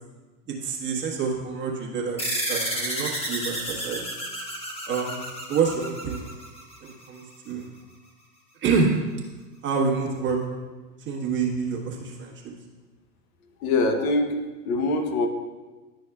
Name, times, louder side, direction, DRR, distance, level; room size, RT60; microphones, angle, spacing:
voice 1, 0.5-4.0 4.9-5.2 5.5-6.3 6.8-7.7 8.6-8.9 9.6-10.4 11.0-12.3, right 5 dB, 25° right, -2 dB, 1.2 m, -27 dB
sound 1, 2.2-7.1, equal, 10° left, 1.1 m, -31 dB
voice 2, 13.6-15.3, left 2 dB, 60° left, 6 dB, 0.9 m, -24 dB
11.0 x 6.2 x 2.3 m, 1.3 s
hypercardioid pair, 120°, 49 cm